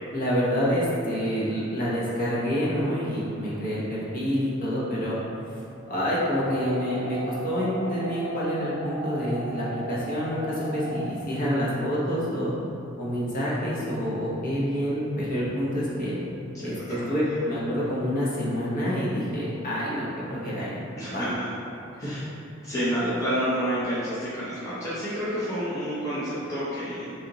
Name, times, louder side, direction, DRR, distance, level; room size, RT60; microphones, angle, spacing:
voice 1, 0.1-5.2 5.9-12.5 13.0-16.2 16.6-20.8 21.1-21.3, equal, 40° left, -8 dB, 0.9 m, -27 dB
sound 1, 6.1-11.1, right 1 dB, 70° right, 0.4 m, -37 dB
voice 2, 21.0-21.4 22.0-22.2 22.6-27.1, equal, 15° left, -12 dB, 0.6 m, -29 dB
3.4 x 2.8 x 3.8 m, 2.7 s
head